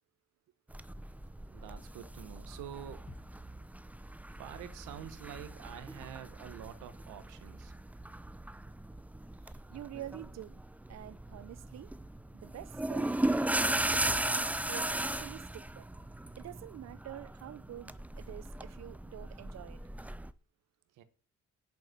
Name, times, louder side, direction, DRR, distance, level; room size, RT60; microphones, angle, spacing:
sound 1, 0.7-20.3, right 1 dB, 5° right, 0.5 m, -37 dB
voice 1, 1.5-3.1 4.4-7.7 21.0-21.1, right 10 dB, 90° right, 1.2 m, -47 dB
sound 2, 3.1-7.0 7.3-7.4, left 3 dB, 20° left, 1.4 m, -60 dB
voice 2, 9.4-10.6 10.9-11.9 12.3-13.1 13.9-15.9 16.4-19.8, right 13 dB, 60° right, 0.6 m, -47 dB
8.1 x 7.1 x 7.7 m
cardioid pair, 90°, 30 cm